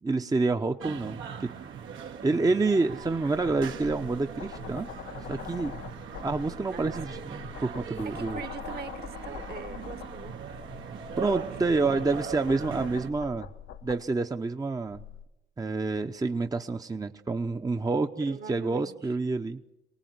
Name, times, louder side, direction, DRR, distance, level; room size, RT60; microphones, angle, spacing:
voice 1, 0.0-1.5 2.2-4.9 5.3-5.7 6.2-8.4 11.2-13.5 13.8-15.0 15.6-19.7, right 3 dB, 20° right, 7 dB, 0.8 m, -28 dB
sound 1, 0.8-13.1, right 7 dB, 90° right, 2.3 m, -40 dB
sound 2, 3.0-14.0 14.9-15.2, left 9 dB, 80° left, 1.0 m, -44 dB
voice 2, 6.7-7.3 8.0-10.4 11.2-11.6 18.2-19.1, right 6 dB, 55° right, 11 dB, 1.6 m, -42 dB
24.0 x 18.5 x 9.4 m, 0.98 s
cardioid pair, 90°, 20 cm